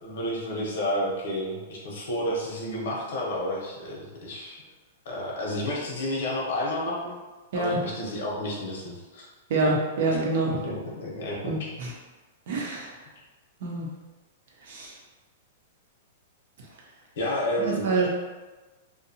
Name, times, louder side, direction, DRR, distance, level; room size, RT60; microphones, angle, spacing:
voice 1, 0.0-4.6 5.0-7.2 7.5-9.3 9.6-9.8 10.5-11.5 17.2-18.1, left 1 dB, 65° left, -3 dB, 0.8 m, -31 dB
voice 2, 9.5-10.6 11.4-11.9 12.5-12.9 13.6-13.9 14.6-14.9 17.6-18.1, right 3 dB, 60° right, -2 dB, 0.7 m, -26 dB
2.7 x 2.2 x 2.7 m, 1.2 s
supercardioid pair, 160°, 0 cm